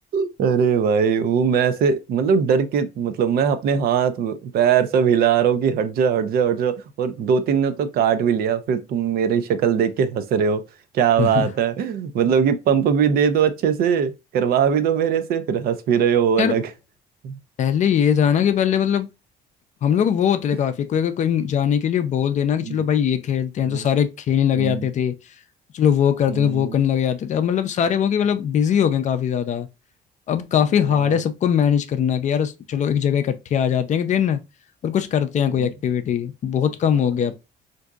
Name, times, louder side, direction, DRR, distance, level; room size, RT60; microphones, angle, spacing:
voice 1, 0.1-10.6 10.9-16.6 17.2-17.4 22.6-22.8 23.6-23.9 24.5-24.9 26.3-26.8 30.8-31.2 35.6-35.7, right 7 dB, 65° right, 0.5 m, -21 dB
voice 2, 11.2-11.5 16.4-16.6 17.6-19.1 19.8-25.1 25.7-29.7 30.3-34.4 34.8-37.3, left 8 dB, 45° left, 0.4 m, -21 dB
3.6 x 2.6 x 2.3 m
cardioid pair, 110°, 17 cm